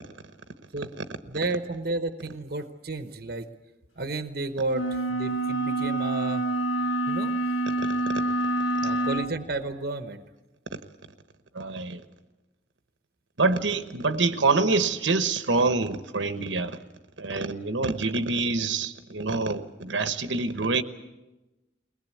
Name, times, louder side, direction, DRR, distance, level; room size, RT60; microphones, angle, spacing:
voice 1, 1.2-3.5 4.0-6.5 7.1-7.4 8.8-10.2, right 2 dB, 50° right, 9 dB, 1.0 m, -32 dB
sound 1, 4.7-9.3, right 2 dB, 90° left, 1.4 m, -27 dB
voice 2, 11.5-12.0 13.4-16.8 17.2-20.8, right 3 dB, 80° right, 10 dB, 1.1 m, -26 dB
22.0 x 19.5 x 8.3 m, 1.1 s
head